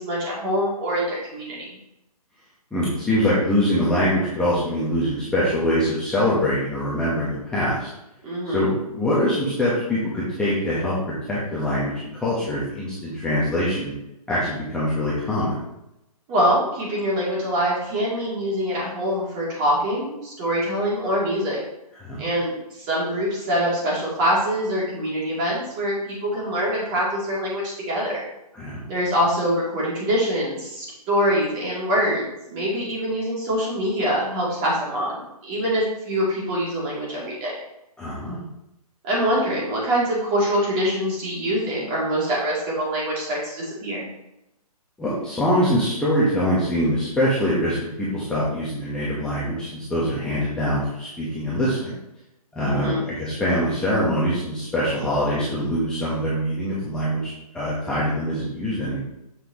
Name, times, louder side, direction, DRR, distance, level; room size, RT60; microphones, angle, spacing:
voice 1, 0.0-1.8 8.2-8.7 16.3-21.6 22.2-22.5 22.8-28.2 28.9-37.6 39.0-44.1 52.7-53.0, equal, 25° right, -5 dB, 2.7 m, -24 dB
voice 2, 2.7-7.9 8.4-13.9 14.3-15.6 22.0-22.3 28.5-28.8 38.0-38.4 45.0-51.9 52.5-59.0, equal, 5° left, -9 dB, 1.1 m, -23 dB
7.5 x 5.6 x 3.0 m, 0.86 s
hypercardioid pair, 145°, 20 cm